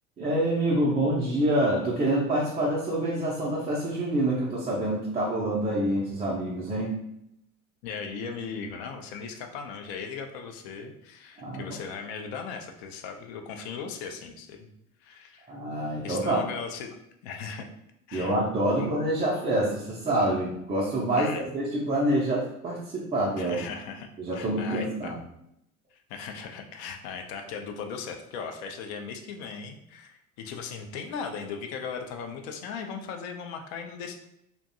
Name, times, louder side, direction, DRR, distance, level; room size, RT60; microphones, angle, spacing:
voice 1, 0.2-6.9 11.4-11.7 15.5-16.5 18.1-23.6 24.2-25.2, right 1 dB, 15° right, -6 dB, 0.4 m, -26 dB
voice 2, 7.8-14.7 15.0-15.5 16.0-16.9 17.2-17.7 18.1-18.4 18.7-18.9 21.2-21.5 23.4-25.1 26.1-34.2, left 6 dB, 50° left, 4 dB, 0.5 m, -38 dB
2.5 x 2.2 x 2.6 m, 0.78 s
figure-of-eight pair, 70°, 43 cm